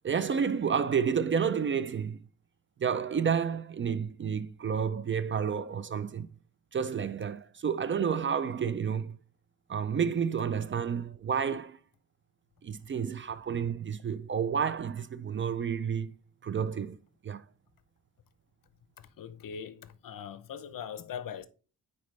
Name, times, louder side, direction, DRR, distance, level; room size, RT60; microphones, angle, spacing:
voice 1, 0.0-2.2 2.8-6.3 6.7-9.2 9.7-11.8 12.6-16.1 16.4-17.0 17.2-17.4, right 7 dB, 35° right, 0.4 m, -30 dB
voice 2, 19.2-21.5, left 8 dB, 65° left, 0.7 m, -41 dB
9.2 x 4.3 x 3.2 m
cardioid pair, 105°, 36 cm